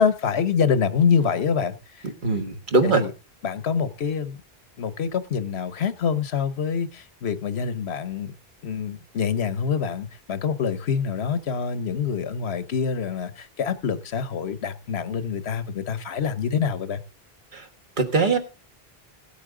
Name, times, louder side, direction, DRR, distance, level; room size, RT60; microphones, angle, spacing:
voice 1, 0.0-1.7 2.3-2.5 2.8-3.1 3.4-4.4 4.8-8.3 8.6-17.0, left 6 dB, 90° left, 1.2 m, -25 dB
voice 2, 2.2-3.0 17.5-17.6 18.0-18.4, right 3 dB, 50° right, 1.7 m, -21 dB
17.0 x 8.6 x 3.7 m
omnidirectional pair, 1.1 m